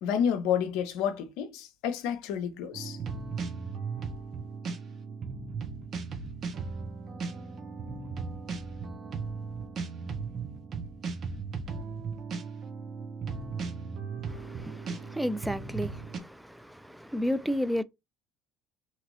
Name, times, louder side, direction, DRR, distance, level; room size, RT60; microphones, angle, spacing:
voice 1, 0.0-3.0, left 8 dB, 70° left, 0.5 m, -30 dB
sound 1, 2.7-16.2, right 5 dB, 50° right, 0.8 m, -37 dB
voice 2, 14.3-17.8, equal, 5° right, 0.4 m, -32 dB
2.8 x 2.5 x 3.0 m
hypercardioid pair, 65°, 0 cm